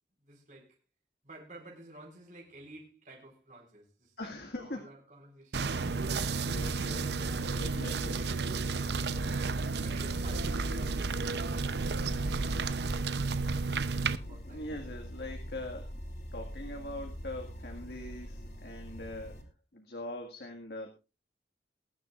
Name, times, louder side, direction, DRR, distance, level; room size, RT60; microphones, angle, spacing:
voice 1, 0.2-0.8 1.2-4.3 4.6-6.1 7.1-7.7 9.8-13.3 13.6-14.6, right 2 dB, 45° right, 4.3 m, -54 dB
voice 2, 4.2-4.9 5.9-7.2 7.5-8.2 14.3-16.0 16.3-19.4 19.7-20.9, left 1 dB, 70° left, 2.0 m, -42 dB
sound 1, 5.5-14.2, right 4 dB, 75° right, 0.8 m, -32 dB
sound 2, 5.7-19.4, equal, 55° left, 4.0 m, -44 dB
21.0 x 10.5 x 2.5 m
head